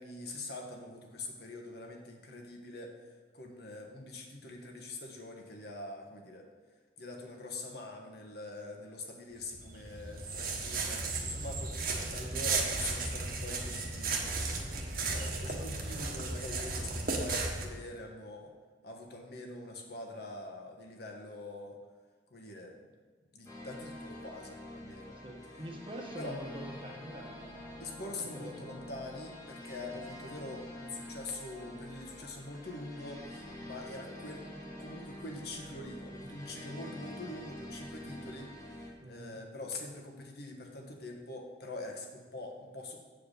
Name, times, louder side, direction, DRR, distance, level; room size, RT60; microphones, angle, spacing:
voice 1, 0.0-6.5 7.0-14.4 15.1-18.5 18.8-21.8 22.3-22.9 23.3-25.2 26.2-26.4 27.8-34.4 34.8-43.0, left 2 dB, 60° left, 1 dB, 1.4 m, -44 dB
sound 1, 9.4-17.6, right 3 dB, 55° right, 1.2 m, -35 dB
sound 2, 23.4-38.9, left 1 dB, 20° left, 1.5 m, -47 dB
voice 2, 25.2-27.8 28.3-28.8 39.0-39.4, right 1 dB, 30° right, 2 dB, 1.1 m, -45 dB
8.4 x 4.7 x 6.6 m, 1.5 s
head